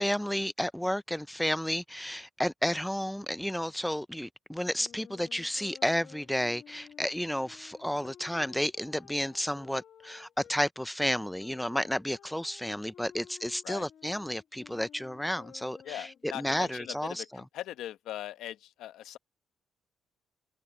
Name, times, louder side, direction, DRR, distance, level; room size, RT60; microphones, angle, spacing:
voice 1, 0.0-17.4, equal, 5° left, 0.6 m, -32 dB
Wind instrument woodwind instrument, 4.7-10.6 11.4-17.1, left 8 dB, 65° left, 2.4 m, -54 dB
voice 2, 15.8-19.2, left 12 dB, 85° left, 1.3 m, -40 dB
cardioid pair, 90°, 0 cm